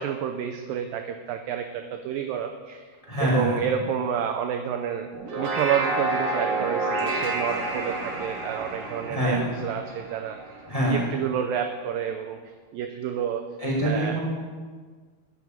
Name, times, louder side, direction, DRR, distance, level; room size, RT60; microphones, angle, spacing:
voice 1, 0.0-2.8 3.3-5.1 5.4-10.4 10.9-12.4 12.7-13.5 13.8-14.2, right 8 dB, 80° right, 5 dB, 2.0 m, -29 dB
voice 2, 3.0-3.6 9.0-9.4 10.6-11.0 13.6-14.2, right 1 dB, 10° left, -5 dB, 2.6 m, -25 dB
sound 1, 5.1-10.7, right 2 dB, 55° right, 2.7 m, -29 dB
10.5 x 7.1 x 9.4 m, 1.5 s
omnidirectional pair, 4.7 m